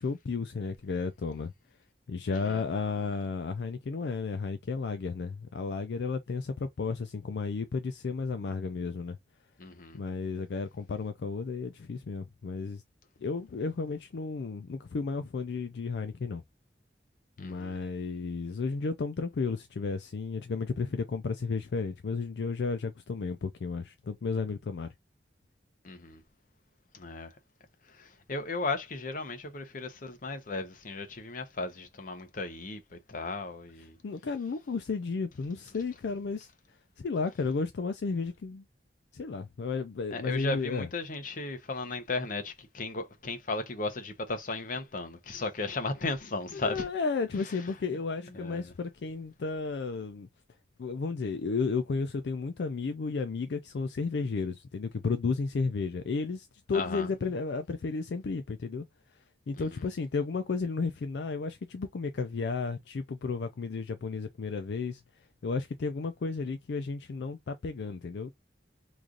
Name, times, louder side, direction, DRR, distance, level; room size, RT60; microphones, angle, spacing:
voice 1, 0.0-1.5 2.1-9.2 9.9-12.8 13.2-16.4 17.4-24.9 34.0-36.5 37.0-38.6 39.1-40.9 46.5-50.3 50.8-58.8 59.5-65.0 65.4-68.3, left 4 dB, 70° left, 0.4 m, -33 dB
voice 2, 9.6-10.0 17.4-17.8 25.8-26.2 26.9-27.3 28.0-34.0 40.1-46.9 48.3-48.7 56.7-57.1 59.6-59.8, left 3 dB, 50° left, 0.8 m, -36 dB
3.1 x 2.5 x 3.7 m
head